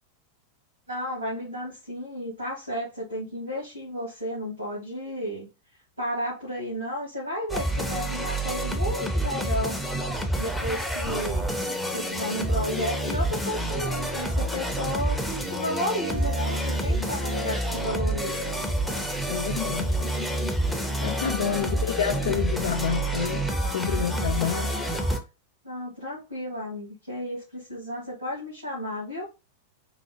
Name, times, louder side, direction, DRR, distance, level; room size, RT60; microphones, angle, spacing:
voice 1, 0.9-5.5 6.0-9.8 10.4-11.6 11.9-18.6 21.2-21.7 25.6-29.2, equal, 85° right, 2.0 m, -33 dB
sound 1, 7.5-25.2, right 1 dB, ahead, 0.7 m, -28 dB
sound 2, 11.3-25.2, right 2 dB, 35° right, 0.8 m, -40 dB
voice 2, 19.3-20.0 21.0-23.4 23.7-24.8, left 9 dB, 60° left, 0.3 m, -28 dB
4.6 x 2.3 x 2.9 m
figure-of-eight pair, 90°, 0 cm